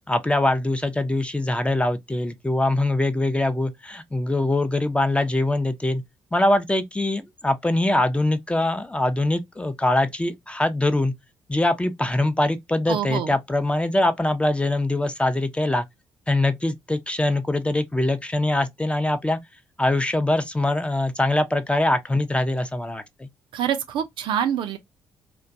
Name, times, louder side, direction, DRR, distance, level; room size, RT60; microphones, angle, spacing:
voice 1, 0.1-6.0 6.3-11.1 11.5-15.8 16.3-19.4 19.8-23.3, left 1 dB, 10° left, 0.5 m, -23 dB
voice 2, 12.9-13.3 23.5-24.8, right 9 dB, 65° right, 0.4 m, -26 dB
2.2 x 2.2 x 2.6 m
hypercardioid pair, 45°, 9 cm